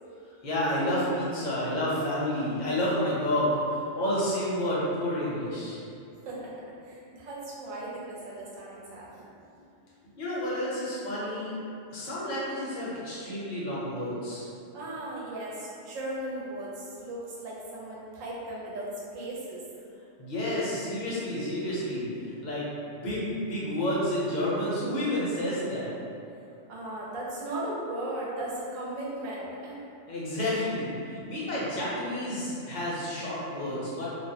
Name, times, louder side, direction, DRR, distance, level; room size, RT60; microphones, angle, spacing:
voice 1, 0.2-5.8 10.2-11.5 11.9-14.5 20.2-22.6 23.0-25.9 30.1-34.1, left 1 dB, 50° left, -8 dB, 0.6 m, -30 dB
voice 2, 6.2-9.3 14.7-19.6 26.7-29.8, right 1 dB, 85° right, -6 dB, 1.0 m, -37 dB
2.5 x 2.0 x 2.7 m, 2.6 s
omnidirectional pair, 1.3 m